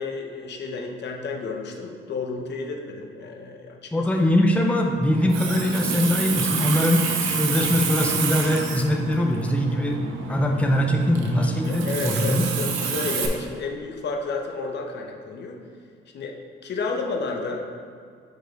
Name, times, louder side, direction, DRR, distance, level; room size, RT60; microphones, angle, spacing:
voice 1, 0.0-4.0 11.6-15.6 16.1-16.3 16.6-17.6, left 4 dB, 60° left, 2 dB, 0.8 m, -31 dB
voice 2, 3.9-12.5, left 1 dB, 5° left, 1 dB, 0.6 m, -22 dB
Water tap faucet, 5.1-13.3, right 6 dB, 90° right, 0.7 m, -28 dB
5.0 x 4.6 x 4.5 m, 2.2 s
cardioid pair, 90°, 20 cm